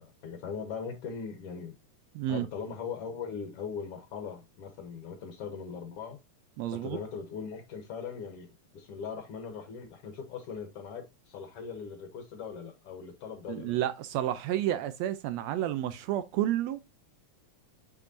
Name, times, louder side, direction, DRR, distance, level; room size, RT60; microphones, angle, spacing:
voice 1, 0.0-1.7 2.3-6.2 6.7-8.5 8.7-13.7, left 6 dB, 65° left, 1.7 m, -40 dB
voice 2, 2.1-2.5 6.6-7.0 13.5-16.8, right 12 dB, 80° right, 1.6 m, -30 dB
6.7 x 6.1 x 2.6 m
omnidirectional pair, 3.3 m